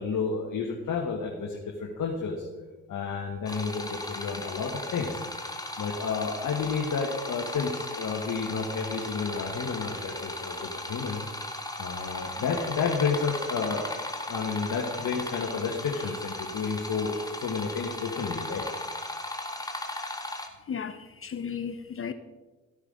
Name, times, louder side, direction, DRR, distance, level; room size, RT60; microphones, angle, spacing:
voice 1, 0.0-2.5 2.9-5.2 5.8-11.2 11.8-13.9 14.3-18.6, left 5 dB, 50° left, 1.6 m, -31 dB
sound 1, 3.5-20.5, left 1 dB, 10° left, 1.7 m, -37 dB
voice 2, 20.7-22.1, left 7 dB, 35° left, 0.8 m, -35 dB
14.0 x 9.8 x 3.9 m
hypercardioid pair, 40°, 39 cm